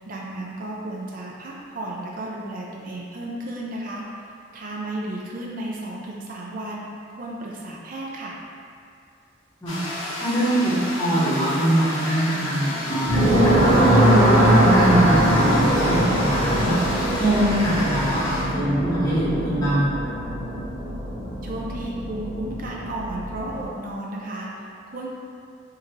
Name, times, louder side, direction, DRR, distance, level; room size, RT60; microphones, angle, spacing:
voice 1, 0.0-6.9 7.2-8.4 21.4-25.1, right 1 dB, 45° right, -3 dB, 0.4 m, -33 dB
sound 1, 9.7-18.4, left 1 dB, 80° left, 0.8 m, -32 dB
voice 2, 10.2-19.9, right 1 dB, 20° left, -10 dB, 0.9 m, -23 dB
sound 2, 13.1-23.6, right 1 dB, 85° right, 1.3 m, -21 dB
3.6 x 3.0 x 2.8 m, 2.5 s
head